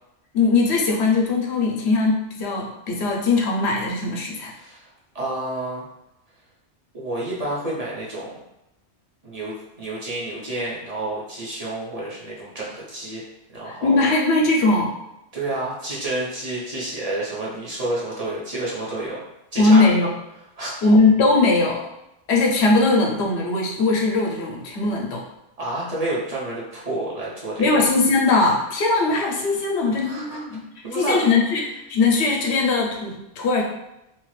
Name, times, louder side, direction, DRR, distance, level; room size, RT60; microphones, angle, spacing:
voice 1, 0.3-4.5 13.7-14.9 19.6-20.1 20.8-21.9 22.3-25.3 27.6-30.7 30.9-33.6, left 3 dB, 70° left, 0 dB, 0.9 m, -20 dB
voice 2, 4.5-4.9 5.1-5.8 6.9-8.4 9.2-13.2 13.5-14.1 15.3-19.3 19.5-19.8 20.6-20.7 25.6-27.8 30.0-30.4 30.8-31.4, right 2 dB, 40° right, -6 dB, 0.7 m, -29 dB
2.7 x 2.4 x 3.1 m, 0.87 s
omnidirectional pair, 1.2 m